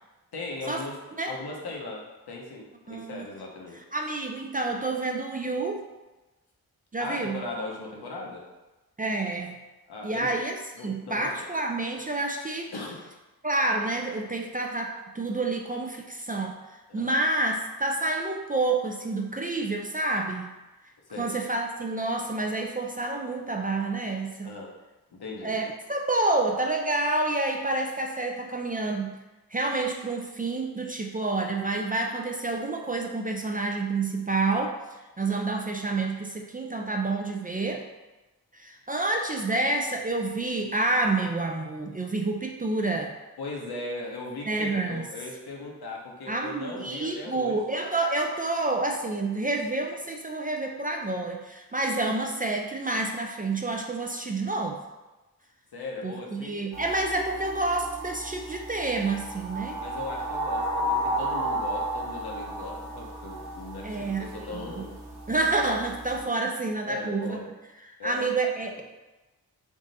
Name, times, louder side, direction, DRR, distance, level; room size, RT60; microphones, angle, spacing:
voice 1, 0.3-3.8 7.0-8.4 9.9-10.3 10.8-11.5 12.7-13.0 16.9-17.1 21.1-21.4 24.4-24.7 25.1-25.6 43.4-47.6 55.7-56.6 59.8-65.0 66.1-66.2 66.8-67.5 68.0-68.3, left 2 dB, 75° left, -1 dB, 0.9 m, -38 dB
voice 2, 2.9-3.3 3.9-5.8 6.9-7.4 9.0-9.6 10.0-10.6 10.8-12.7 13.4-16.6 16.9-20.5 21.2-24.5 25.4-29.2 29.5-34.8 35.2-37.8 38.5-43.2 44.5-45.0 46.3-54.8 56.0-59.8 63.8-64.8 65.3-67.4 67.8-68.8, right 2 dB, 25° right, 2 dB, 0.4 m, -28 dB
sound 1, 56.7-66.2, right 1 dB, 75° right, 1.0 m, -33 dB
3.5 x 2.6 x 3.9 m, 1.1 s
cardioid pair, 65°, 39 cm